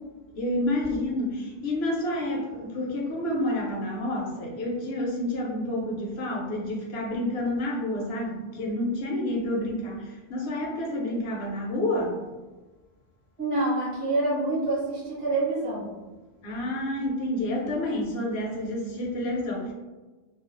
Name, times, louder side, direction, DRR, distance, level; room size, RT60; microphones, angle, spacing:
voice 1, 0.4-12.2 16.4-19.7, left 1 dB, 80° left, -1 dB, 0.9 m, -29 dB
voice 2, 13.4-15.9, right 2 dB, 35° right, -9 dB, 0.9 m, -26 dB
2.3 x 2.2 x 2.4 m, 1.2 s
omnidirectional pair, 1.1 m